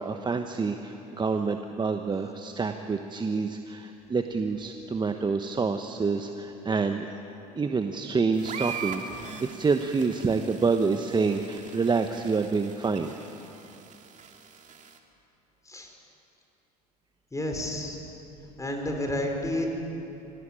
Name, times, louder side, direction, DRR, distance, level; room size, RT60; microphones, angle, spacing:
voice 1, 0.0-7.0 7.6-13.1, right 4 dB, 20° right, 6 dB, 1.1 m, -27 dB
sound 1, 8.3-15.0, right 6 dB, 35° right, 2.4 m, -42 dB
voice 2, 17.3-18.0 18.6-19.7, left 1 dB, 15° left, 2 dB, 5.0 m, -30 dB
23.5 x 17.5 x 8.9 m, 2.9 s
hypercardioid pair, 70°, 21 cm